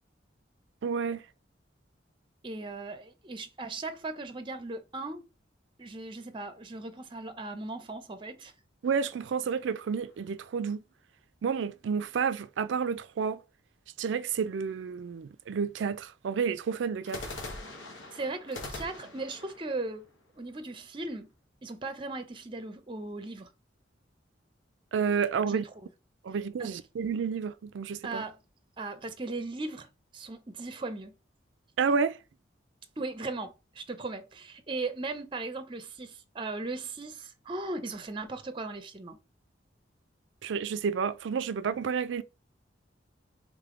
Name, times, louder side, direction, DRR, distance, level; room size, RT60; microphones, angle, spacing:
voice 1, 0.8-1.2 8.8-10.8 11.4-13.4 14.0-17.3 24.9-25.6 26.2-28.2 31.8-32.2 40.4-42.2, right 6 dB, 70° right, 0.4 m, -30 dB
voice 2, 2.4-5.2 5.8-8.5 18.1-20.1 20.4-21.3 21.6-23.5 25.4-25.6 26.6-26.8 28.0-28.4 28.8-29.9 30.1-31.1 33.0-39.2, right 3 dB, 25° right, 0.6 m, -37 dB
sound 1, 8.8-10.3 17.0-21.0, left 2 dB, 85° left, 1.3 m, -44 dB
3.6 x 3.4 x 3.7 m
head